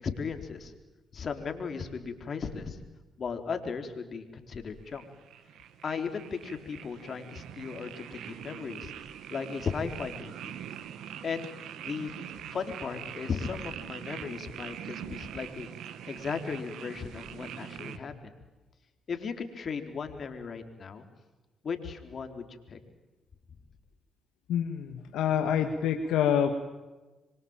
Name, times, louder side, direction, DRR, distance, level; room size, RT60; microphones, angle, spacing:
voice 1, 0.0-0.7 1.1-2.8 3.2-5.1 5.8-8.9 9.3-10.5 11.2-11.4 11.8-12.1 12.5-15.7 16.1-18.3 19.1-21.0 21.6-22.8, left 5 dB, 55° left, 7 dB, 4.0 m, -36 dB
sound 1, 4.9-18.0, right 10 dB, 75° right, 1.6 m, -43 dB
voice 2, 24.5-26.5, left 9 dB, 80° left, 5 dB, 1.8 m, -27 dB
27.0 x 23.5 x 9.0 m, 1.2 s
supercardioid pair, 55°, 0 cm